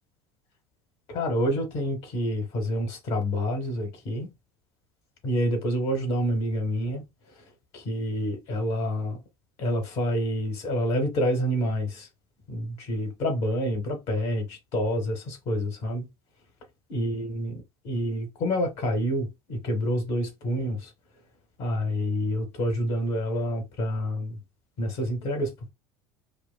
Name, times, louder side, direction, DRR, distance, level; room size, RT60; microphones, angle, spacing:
voice 1, 1.1-4.3 5.2-7.0 7.7-9.2 9.6-12.1 12.5-16.1 16.9-17.5 17.8-20.9 21.6-24.4 24.8-25.7, equal, 50° left, 1.2 m, -28 dB
5.0 x 2.1 x 2.2 m
figure-of-eight pair, 70°, 13 cm